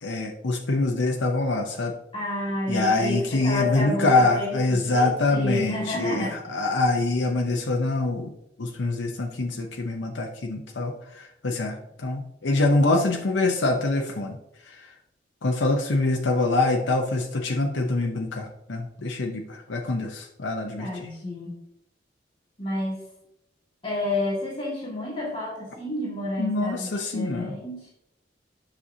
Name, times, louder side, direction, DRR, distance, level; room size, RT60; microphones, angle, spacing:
voice 1, 0.0-1.9 2.7-8.3 8.6-14.4 14.6-14.9 15.4-21.1 26.4-27.6, left 2 dB, 85° left, 1 dB, 0.8 m, -25 dB
voice 2, 2.1-6.5 20.8-21.6 22.6-23.0 23.8-27.9, left 1 dB, 30° left, -5 dB, 2.0 m, -30 dB
9.8 x 6.3 x 2.8 m, 0.83 s
head